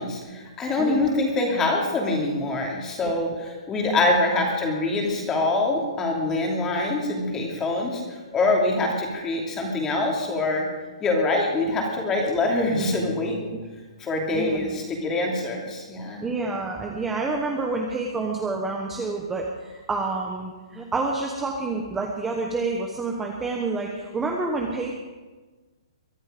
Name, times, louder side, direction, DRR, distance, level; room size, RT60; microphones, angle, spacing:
voice 1, 0.0-10.7 11.0-13.4 14.0-16.2, left 2 dB, 15° left, 0 dB, 2.8 m, -24 dB
voice 2, 0.8-1.1 3.0-3.1 3.8-4.2 14.3-14.8 16.2-24.9, right 3 dB, 10° right, 0 dB, 1.1 m, -28 dB
22.5 x 12.0 x 5.2 m, 1.3 s
hypercardioid pair, 165°, 3 cm